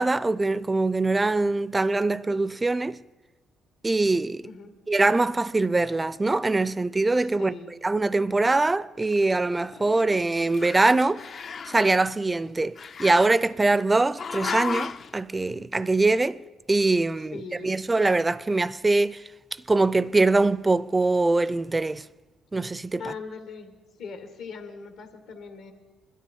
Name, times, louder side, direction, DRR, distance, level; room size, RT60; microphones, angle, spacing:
voice 1, 0.0-3.0 3.8-4.5 4.9-7.5 7.8-11.3 11.7-16.4 16.7-19.3 19.7-22.1 22.5-23.1, right 2 dB, 20° right, 0.4 m, -23 dB
voice 2, 7.2-7.7 17.3-17.7 23.0-23.7 24.0-25.7, left 5 dB, 85° left, 1.9 m, -40 dB
Growling, 8.9-10.2 10.5-11.9 12.8-13.8 14.2-15.1, left 6 dB, 50° left, 0.5 m, -35 dB
21.0 x 12.5 x 4.6 m
cardioid pair, 90°, 0 cm